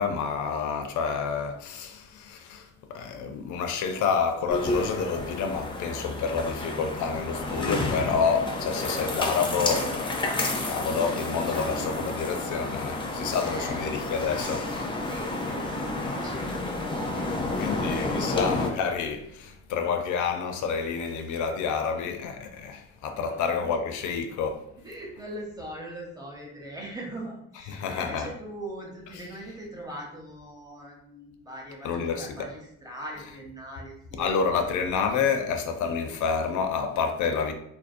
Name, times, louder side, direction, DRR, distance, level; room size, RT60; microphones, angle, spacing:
voice 1, 0.0-10.3 10.6-14.7 17.6-24.6 27.7-28.3 31.8-32.5 34.2-37.5, left 5 dB, 75° left, 0.5 m, -29 dB
sound 1, 4.5-18.7, left 2 dB, 15° left, 0.4 m, -30 dB
voice 2, 13.4-13.8 15.0-18.4 23.2-23.8 24.8-34.3, right 1 dB, 10° right, 0.7 m, -41 dB
2.5 x 2.0 x 2.4 m
cardioid pair, 90°, 30 cm